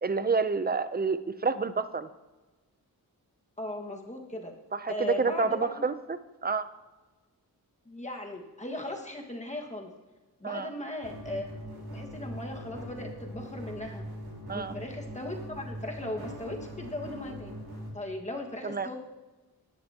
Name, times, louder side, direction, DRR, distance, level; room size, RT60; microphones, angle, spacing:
voice 1, 0.0-2.1 4.7-6.7 10.4-10.7 14.5-14.7 18.6-18.9, right 4 dB, 25° right, 12 dB, 0.6 m, -29 dB
voice 2, 3.6-4.5 4.9-5.9 7.9-9.9 10.4-11.5 11.9-14.0 14.5-17.6 17.9-19.0, left 1 dB, 20° left, 1 dB, 1.7 m, -38 dB
sound 1, 11.0-17.9, equal, 85° right, 4.4 m, -41 dB
19.0 x 11.5 x 2.9 m, 1.2 s
wide cardioid pair, 120°, 37 cm